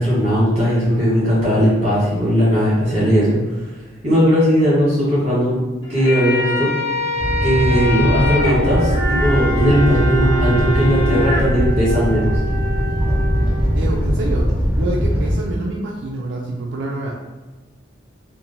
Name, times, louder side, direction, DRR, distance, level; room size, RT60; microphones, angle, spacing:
voice 1, 0.0-3.4 4.0-5.6 5.9-6.7 7.4-12.3, equal, 35° right, -8 dB, 1.2 m, -17 dB
sound 1, 5.8-11.4, equal, 90° left, 0.7 m, -24 dB
Animal, 7.2-15.3, equal, 10° right, 0.6 m, -20 dB
Wind instrument woodwind instrument, 7.6-14.0, right 1 dB, 55° left, 0.4 m, -29 dB
voice 2, 13.7-14.5 14.8-17.1, right 2 dB, 75° right, -2 dB, 0.3 m, -26 dB
2.9 x 2.0 x 2.6 m, 1.2 s
head